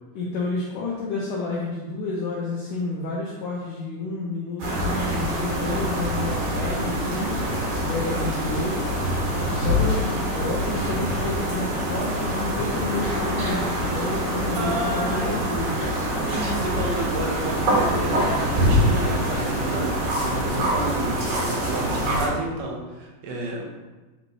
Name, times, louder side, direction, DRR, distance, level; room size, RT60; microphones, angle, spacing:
voice 1, 0.2-8.9 9.5-15.8, left 3 dB, 80° left, -5 dB, 1.9 m, -30 dB
sound 1, 4.6-22.3, equal, 55° right, 2.7 m, -25 dB
voice 2, 14.6-15.3 16.2-23.6, right 2 dB, 75° right, -1 dB, 2.9 m, -31 dB
8.6 x 4.1 x 3.0 m, 1.2 s
omnidirectional pair, 4.6 m